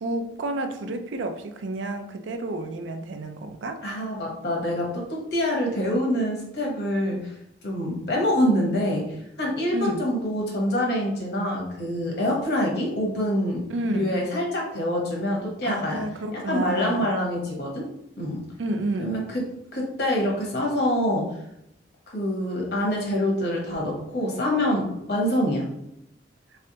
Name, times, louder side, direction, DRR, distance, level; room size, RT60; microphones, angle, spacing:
voice 1, 0.0-3.8 9.7-10.1 13.7-14.1 15.6-17.1 18.6-19.1, right 1 dB, 90° right, 6 dB, 0.4 m, -30 dB
voice 2, 3.8-7.3 7.6-9.0 9.4-13.6 13.9-16.0 16.3-17.9 18.2-18.4 19.0-19.4 19.7-21.3 22.1-25.7, left 1 dB, 60° left, -1 dB, 1.0 m, -25 dB
3.3 x 3.2 x 2.8 m, 0.81 s
head